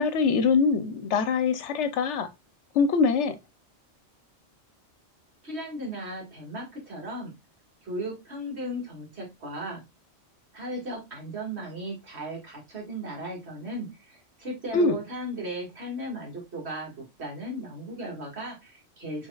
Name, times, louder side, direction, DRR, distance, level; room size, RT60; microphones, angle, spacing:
voice 1, 0.0-2.3 2.7-3.4 14.7-15.0, left 5 dB, 70° left, 0.9 m, -23 dB
voice 2, 5.4-7.3 7.8-9.8 10.5-19.3, right 1 dB, 60° right, 2.2 m, -36 dB
6.3 x 3.1 x 2.3 m
omnidirectional pair, 1.3 m